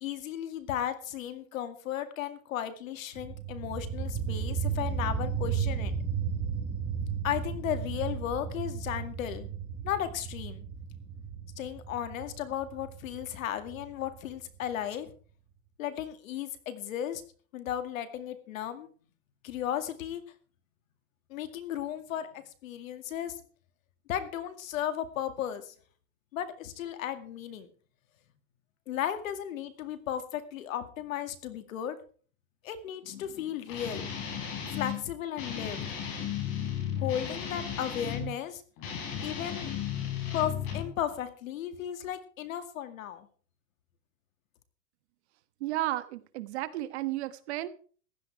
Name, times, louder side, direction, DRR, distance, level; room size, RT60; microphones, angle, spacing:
voice 1, 0.0-5.9 7.2-9.5 9.8-10.6 11.6-15.1 15.8-17.2 17.5-18.9 19.4-20.2 21.3-23.4 24.1-25.8 26.3-27.7 28.9-32.0 32.6-34.1 34.7-35.8 37.0-38.6 39.2-39.7 40.3-43.3, left 10 dB, 75° left, 10 dB, 2.3 m, -35 dB
sound 1, 3.2-14.7, right 7 dB, 15° right, 1.1 m, -34 dB
Guitar, 33.7-35.0 35.4-38.3 38.8-40.9, left 8 dB, 35° left, 4.3 m, -35 dB
voice 2, 45.6-47.7, right 16 dB, 55° right, 12 dB, 1.2 m, -33 dB
15.5 x 11.0 x 4.7 m, 0.43 s
supercardioid pair, 165°, 40 cm